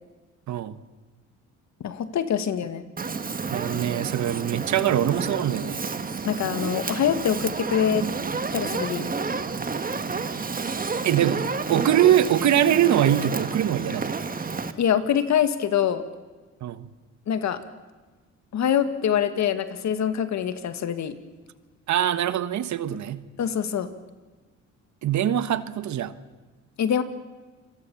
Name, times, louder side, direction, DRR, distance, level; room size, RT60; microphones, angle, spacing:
voice 1, 0.5-0.8 3.5-5.9 11.0-14.2 16.6-16.9 21.9-23.2 25.0-26.1, right 11 dB, 70° right, 12 dB, 1.4 m, -23 dB
voice 2, 1.8-2.8 6.2-8.0 8.5-9.1 14.8-16.0 17.3-17.6 18.5-21.1 23.4-23.9 26.8-27.0, left 8 dB, 65° left, 10 dB, 2.0 m, -24 dB
Fire, 3.0-14.7, right 4 dB, 30° right, 1.6 m, -30 dB
28.5 x 22.5 x 7.2 m, 1.3 s
cardioid pair, 90°, 30 cm